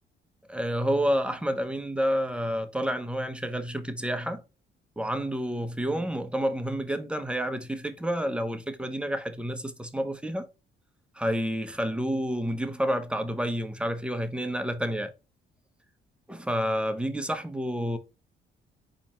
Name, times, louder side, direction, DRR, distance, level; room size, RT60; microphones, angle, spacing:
voice 1, 0.5-4.4 5.0-10.5 11.2-15.1 16.3-18.0, equal, 5° right, 0.6 m, -29 dB
4.2 x 2.9 x 4.2 m
cardioid pair, 90°, 20 cm